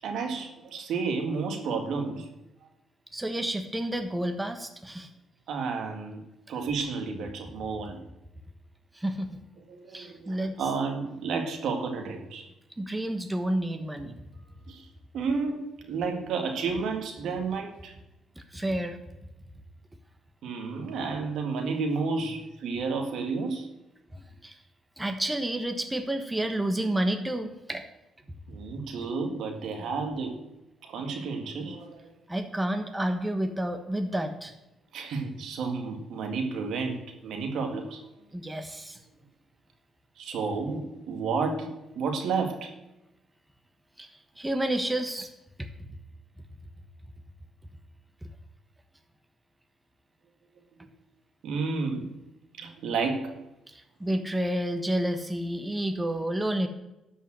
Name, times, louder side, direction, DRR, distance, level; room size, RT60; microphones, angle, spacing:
voice 1, 0.0-2.3 5.5-8.0 9.7-12.5 14.7-14.9 15.1-17.9 20.4-23.7 28.5-30.4 30.8-32.1 34.9-38.1 40.2-42.7 50.8-50.9 51.4-52.1 52.6-53.4, right 4 dB, 75° right, 4 dB, 2.0 m, -31 dB
voice 2, 3.1-5.1 8.9-9.4 9.9-10.6 12.8-14.2 18.4-19.0 24.1-24.6 25.0-27.9 32.3-34.5 38.3-39.0 44.0-44.1 44.4-45.3 45.6-45.7 53.7-56.7, right 1 dB, 10° right, 6 dB, 1.3 m, -30 dB
12.0 x 5.5 x 7.6 m, 0.95 s
cardioid pair, 90°, 0 cm